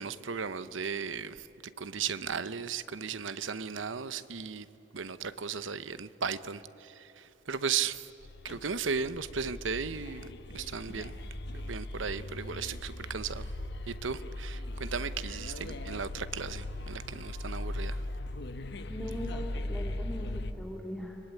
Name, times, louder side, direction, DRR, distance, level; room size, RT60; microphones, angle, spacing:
voice 1, 0.0-1.5 1.8-4.7 4.9-8.1 8.4-11.2 11.5-13.5 13.9-18.0, right 6 dB, 80° right, 14 dB, 0.9 m, -36 dB
sound 1, 8.2-20.5, left 1 dB, 60° left, 1.1 m, -39 dB
voice 2, 18.9-21.2, equal, ahead, -1 dB, 2.3 m, -40 dB
30.0 x 21.5 x 9.2 m, 3.0 s
head